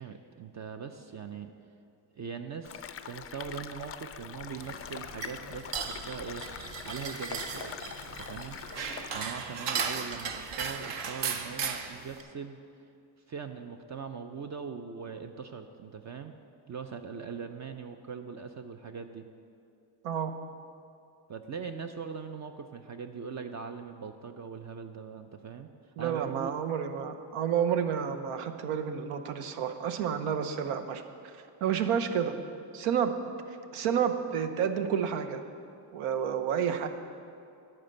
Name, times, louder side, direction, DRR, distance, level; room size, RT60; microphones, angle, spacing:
voice 1, 0.0-1.5 2.2-6.4 6.8-7.8 8.2-8.6 9.1-12.6 13.3-16.4 16.7-19.3 21.3-25.7 26.0-26.5, right 6 dB, 35° right, 7 dB, 0.5 m, -41 dB
sound 1, 2.6-9.2, left 8 dB, 30° left, 0.4 m, -43 dB
sound 2, 4.6-12.2, right 6 dB, 60° right, 0.9 m, -37 dB
voice 2, 26.0-31.3 31.6-32.3 32.7-33.1 33.7-35.4 35.9-36.9, right 8 dB, 85° right, 8 dB, 0.8 m, -30 dB
11.0 x 4.4 x 7.8 m, 2.5 s
cardioid pair, 95°, 49 cm